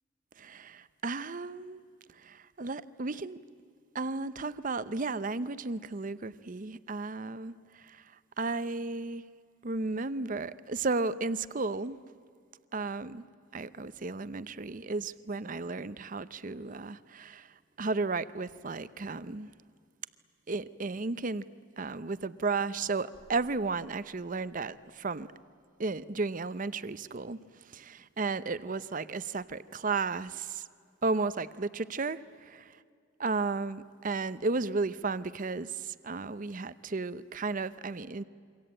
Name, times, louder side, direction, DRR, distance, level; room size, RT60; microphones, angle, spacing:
voice 1, 0.4-1.8 2.2-3.4 3.9-8.0 8.4-9.2 9.6-12.0 12.7-13.2 13.5-17.5 17.8-19.5 20.5-21.4 21.8-25.3 25.8-27.4 27.7-30.6 31.0-32.5 33.2-38.2, right 3 dB, 45° right, 15 dB, 0.7 m, -34 dB
28.0 x 24.0 x 8.8 m, 2.1 s
head